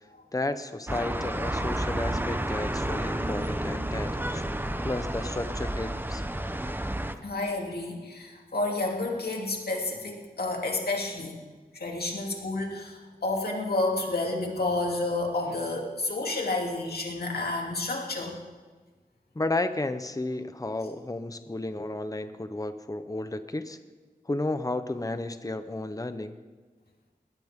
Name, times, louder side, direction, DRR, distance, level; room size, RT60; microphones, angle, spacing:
voice 1, 0.3-4.4 4.8-6.2 19.3-23.8 24.3-26.4, left 2 dB, 20° left, 10 dB, 0.9 m, -32 dB
sound 1, 0.9-7.1, right 1 dB, 15° right, 0.9 m, -31 dB
voice 2, 7.2-11.4 11.7-18.3, left 2 dB, 90° left, -1 dB, 2.9 m, -30 dB
21.0 x 17.5 x 3.7 m, 1.4 s
wide cardioid pair, 75°, 16 cm